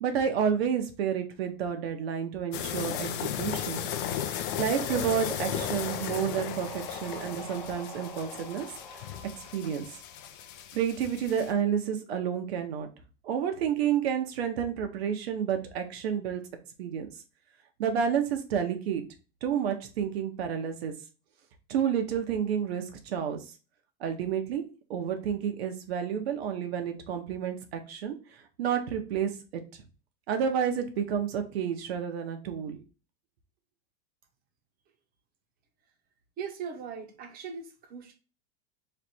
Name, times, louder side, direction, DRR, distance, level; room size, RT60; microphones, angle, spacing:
voice 1, 0.0-3.9 4.6-8.7 9.5-9.9 10.7-12.9 13.2-16.4 16.8-17.1 17.8-19.0 19.4-20.9 21.7-23.4 24.0-24.6 24.9-28.1 28.6-29.6 30.3-32.8, right 8 dB, 85° right, 6 dB, 1.0 m, -30 dB
sound 1, 2.5-11.5, left 10 dB, 60° left, 0.6 m, -35 dB
sound 2, 4.8-10.5, right 1 dB, 10° left, 0.4 m, -43 dB
voice 2, 36.4-38.1, right 6 dB, 30° right, 4 dB, 0.9 m, -39 dB
3.2 x 2.6 x 4.2 m, 0.34 s
supercardioid pair, 150°, 31 cm